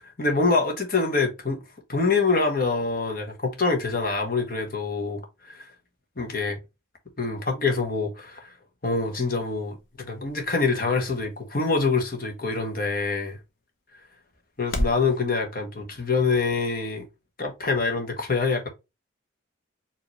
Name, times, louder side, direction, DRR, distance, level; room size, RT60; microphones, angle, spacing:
voice 1, 0.2-1.6 1.9-5.7 6.2-6.6 7.2-8.5 8.8-13.4 14.6-17.0 17.4-18.7, left 4 dB, 45° left, 1.3 m, -25 dB
sound 1, 8.8-15.1, left 1 dB, 75° left, 1.0 m, -38 dB
4.9 x 2.9 x 3.0 m
head